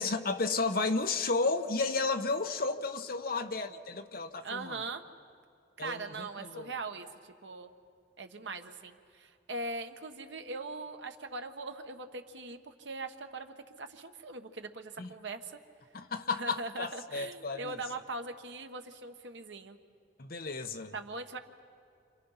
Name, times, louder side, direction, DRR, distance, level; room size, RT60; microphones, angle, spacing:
voice 1, 0.0-4.8 5.8-6.7 15.0-15.1 15.9-17.7 20.2-20.9, left 3 dB, 55° left, 1.1 m, -33 dB
voice 2, 4.4-5.0 5.8-7.7 8.2-15.6 16.3-19.8 20.9-21.4, right 3 dB, 85° right, 1.4 m, -41 dB
29.5 x 27.0 x 5.8 m
head